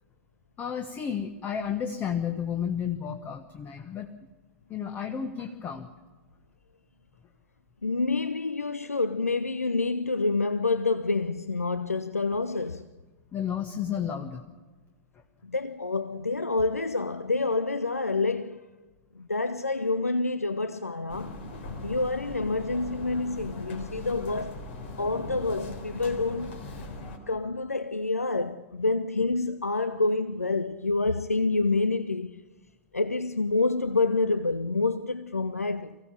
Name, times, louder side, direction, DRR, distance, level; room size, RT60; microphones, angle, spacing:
voice 1, 0.6-4.1 4.7-5.9 13.3-14.5, left 8 dB, 25° left, 1.2 m, -32 dB
voice 2, 7.8-12.9 15.4-18.6 19.2-21.4 21.8-24.6 25.0-26.6 27.3-32.4 32.9-36.0, left 3 dB, 85° left, 0.6 m, -27 dB
sound 1, 21.1-27.2, left 2 dB, 50° left, 3.8 m, -40 dB
24.0 x 16.0 x 7.4 m
figure-of-eight pair, 95°, 8 cm